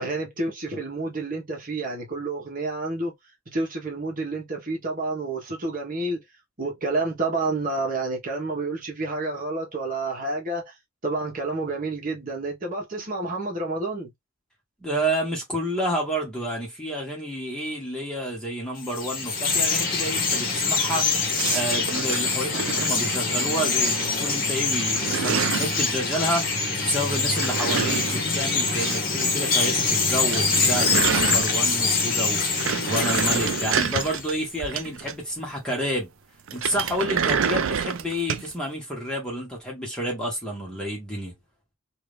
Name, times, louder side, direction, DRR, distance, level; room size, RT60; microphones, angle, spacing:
voice 1, 0.0-3.1 3.5-6.2 6.6-10.8 11.0-14.1, right 2 dB, 40° right, 1.3 m, -29 dB
voice 2, 14.8-21.1 21.5-26.5 26.8-32.6 32.8-36.1 36.5-41.3, equal, 5° left, 1.4 m, -29 dB
Chirp tweet, 18.8-34.4, left 4 dB, 40° left, 1.2 m, -25 dB
sound 1, 21.4-23.5 23.8-24.3 24.6-25.8 27.1-29.3 29.5-29.6 29.9-30.0 30.2-31.9 32.3-35.4 36.5-38.5, right 7 dB, 65° right, 0.4 m, -28 dB
2.8 x 2.7 x 3.3 m
head